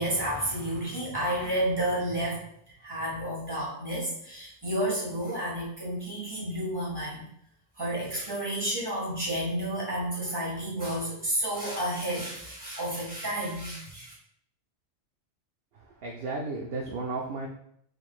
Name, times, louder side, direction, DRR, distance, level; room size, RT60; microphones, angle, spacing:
voice 1, 0.0-2.4 2.8-7.2 7.8-14.1, right 1 dB, 20° right, -6 dB, 1.6 m, -31 dB
voice 2, 16.0-17.5, right 3 dB, 65° right, 0 dB, 0.7 m, -33 dB
4.5 x 3.8 x 2.3 m, 0.70 s
omnidirectional pair, 1.1 m